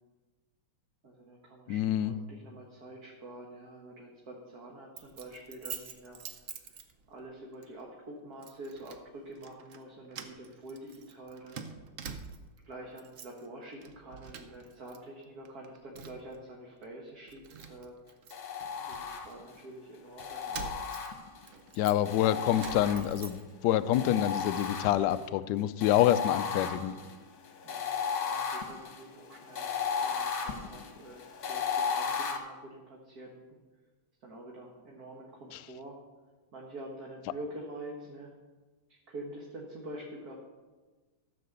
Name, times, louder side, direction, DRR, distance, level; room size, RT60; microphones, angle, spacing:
voice 1, 1.0-6.2 7.1-11.6 12.7-17.9 18.8-20.9 22.1-22.9 27.6-28.0 28.2-33.6 34.2-36.0 36.5-38.3 38.9-40.3, right 1 dB, 45° right, -1 dB, 1.8 m, -46 dB
voice 2, 1.7-2.1 21.8-26.9 35.5-35.6, left 12 dB, 80° left, 12 dB, 0.9 m, -27 dB
Keys jangling, 5.0-7.3 7.6-7.8 8.4-9.0 9.4-9.8 10.1-12.6 12.9-13.5 13.8-15.0 15.2-16.4 16.8-16.9 17.3-19.6 20.2-23.8 24.1-24.8, right 6 dB, 65° right, 0.8 m, -46 dB
sound 1, 18.3-19.6 20.2-21.5 22.0-23.4 23.9-25.2 25.8-32.4, left 6 dB, 50° left, 1.5 m, -35 dB
14.0 x 6.6 x 6.7 m, 1.3 s
omnidirectional pair, 2.4 m